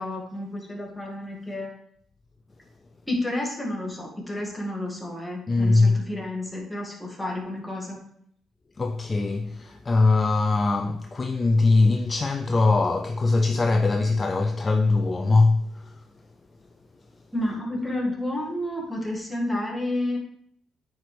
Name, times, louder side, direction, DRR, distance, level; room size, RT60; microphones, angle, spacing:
voice 1, 0.0-1.7 3.1-8.0 17.3-20.2, left 1 dB, 5° left, 2.0 m, -30 dB
voice 2, 5.5-6.0 8.8-16.0, left 3 dB, 30° left, 0.5 m, -21 dB
9.1 x 4.7 x 3.3 m
cardioid pair, 90°, 0 cm